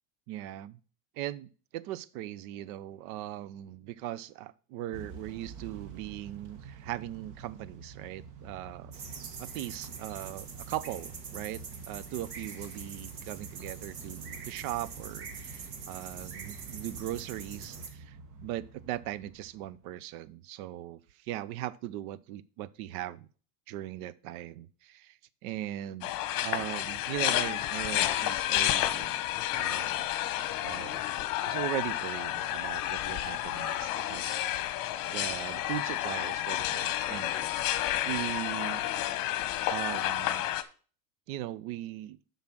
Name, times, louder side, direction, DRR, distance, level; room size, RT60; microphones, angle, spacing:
voice 1, 0.3-0.8 1.2-8.9 9.4-18.2 18.4-23.3 23.7-29.2 29.6-30.0 30.6-31.0 31.4-37.7 38.0-38.9 39.7-40.5 41.3-42.2, right 13 dB, 60° right, 18 dB, 0.7 m, -39 dB
Motor vehicle (road) / Engine starting / Accelerating revving vroom, 4.9-19.9, right 5 dB, 40° right, 1.3 m, -48 dB
sound 1, 8.9-17.9, right 5 dB, 90° right, 1.8 m, -44 dB
sound 2, 26.0-40.6, left 14 dB, 45° left, 1.0 m, -31 dB
7.2 x 5.7 x 6.0 m, 0.39 s
supercardioid pair, 125°, 47 cm